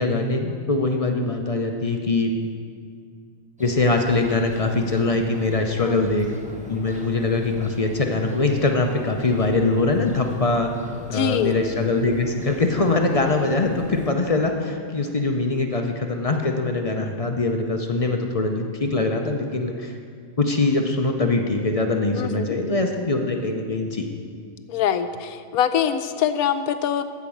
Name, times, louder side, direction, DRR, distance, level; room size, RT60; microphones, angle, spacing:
voice 1, 0.0-2.3 3.6-6.3 6.7-10.7 11.1-20.0 20.4-24.1, left 3 dB, 40° left, 3 dB, 0.5 m, -22 dB
sound 1, 3.6-14.1, equal, 5° right, 0.7 m, -41 dB
voice 2, 11.0-11.5 22.1-22.6 24.7-27.0, left 9 dB, 90° left, 10 dB, 1.1 m, -24 dB
13.0 x 5.2 x 7.1 m, 2.1 s
omnidirectional pair, 1.5 m